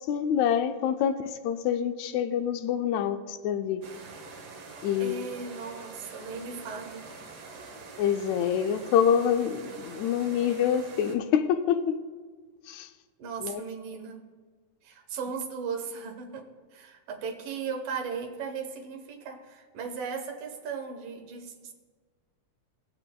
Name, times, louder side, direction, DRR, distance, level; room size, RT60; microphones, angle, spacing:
voice 1, 0.1-3.8 4.8-5.3 8.0-12.0 12.7-12.9 13.4-13.6, left 8 dB, 80° left, 1.6 m, -26 dB
sound 1, 3.8-11.2, right 4 dB, 60° right, 1.3 m, -45 dB
voice 2, 5.0-7.1 13.2-14.2 14.8-21.7, right 5 dB, 85° right, 2.8 m, -37 dB
21.0 x 7.8 x 2.3 m
omnidirectional pair, 3.7 m